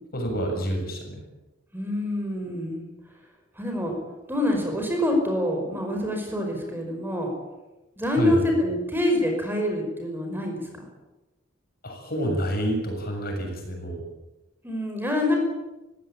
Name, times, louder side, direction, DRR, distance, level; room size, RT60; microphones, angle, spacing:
voice 1, 0.1-1.2 8.1-8.4 11.8-14.0, equal, 50° left, 3 dB, 7.4 m, -28 dB
voice 2, 1.7-2.9 3.6-4.0 4.3-7.3 8.0-10.8 14.6-15.4, left 1 dB, 10° right, 2 dB, 5.4 m, -26 dB
24.5 x 16.5 x 8.8 m, 1.0 s
head